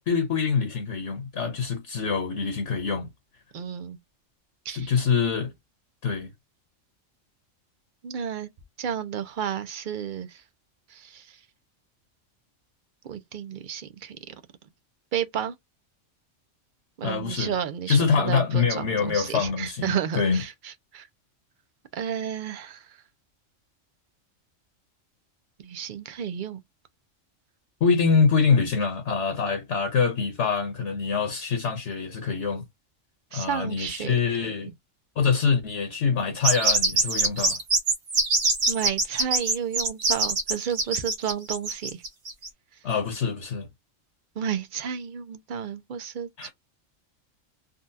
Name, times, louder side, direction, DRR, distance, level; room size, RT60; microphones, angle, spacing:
voice 1, 0.0-3.1 4.7-5.5 6.0-6.3 17.0-17.5 17.9-20.4 27.8-32.6 33.3-34.7 35.2-37.6 42.8-43.7 46.4-46.5, left 5 dB, 65° left, 1.1 m, -25 dB
voice 2, 3.5-4.0 4.7-4.9 8.0-8.5 8.8-10.4 10.9-11.4 13.0-14.3 15.1-15.5 17.0-21.1 21.9-23.0 25.6-26.6 33.3-34.1 34.4-34.5 38.7-42.0 44.4-46.5, right 8 dB, 60° right, 0.5 m, -32 dB
sound 1, 36.4-42.5, right 3 dB, 90° right, 1.5 m, -24 dB
3.8 x 2.2 x 2.6 m
omnidirectional pair, 1.3 m